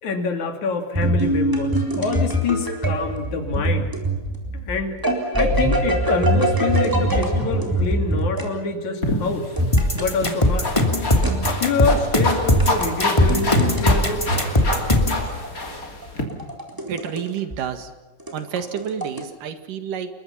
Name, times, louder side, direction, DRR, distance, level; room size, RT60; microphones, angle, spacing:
voice 1, 0.0-3.9 4.5-5.0 5.3-9.5 9.9-10.7 11.6-14.3, left 4 dB, 65° left, 6 dB, 3.9 m, -26 dB
sound 1, 0.9-8.5 9.6-10.1 11.2-11.7 12.5-13.8 15.3-17.2 17.5-17.6 18.2-19.2, right 1 dB, 5° right, 3.8 m, -23 dB
sound 2, 9.0-16.2, left 2 dB, 25° left, 3.4 m, -27 dB
sound 3, 9.7-15.2, left 1 dB, 10° left, 2.3 m, -19 dB
voice 2, 16.9-17.9 18.3-20.1, right 8 dB, 85° right, 8 dB, 3.5 m, -29 dB
28.0 x 22.5 x 5.7 m, 1.2 s
omnidirectional pair, 3.7 m